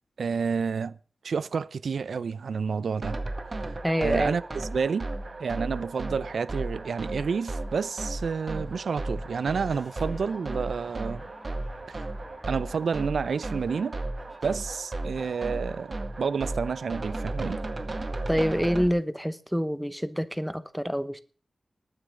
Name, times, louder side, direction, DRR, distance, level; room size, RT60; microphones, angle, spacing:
voice 1, 0.2-1.0 1.2-3.2 3.5-4.4 4.7-5.1 5.4-11.2 11.9-12.0 12.5-14.0 14.4-17.6, right 5 dB, 85° right, 0.5 m, -29 dB
sound 1, 3.0-18.9, right 2 dB, 40° right, 1.8 m, -35 dB
voice 2, 3.8-4.4 18.3-21.2, equal, ahead, 0.9 m, -27 dB
sound 2, 9.4-14.5, left 1 dB, 25° left, 2.8 m, -52 dB
20.0 x 9.5 x 3.8 m
wide cardioid pair, 100°, 0 cm